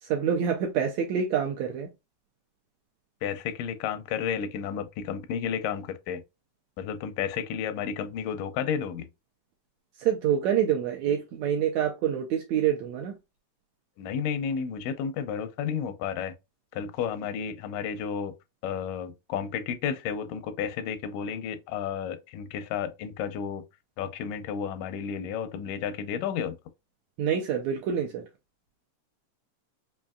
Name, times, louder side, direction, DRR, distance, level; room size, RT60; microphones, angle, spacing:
voice 1, 0.0-1.9 10.0-13.1 27.2-28.2, right 8 dB, 80° right, 1.6 m, -26 dB
voice 2, 3.2-6.2 6.8-9.1 14.0-16.3 16.7-18.3 18.6-23.6 24.0-26.6, left 7 dB, 85° left, 2.1 m, -32 dB
5.5 x 2.6 x 2.2 m
omnidirectional pair, 3.7 m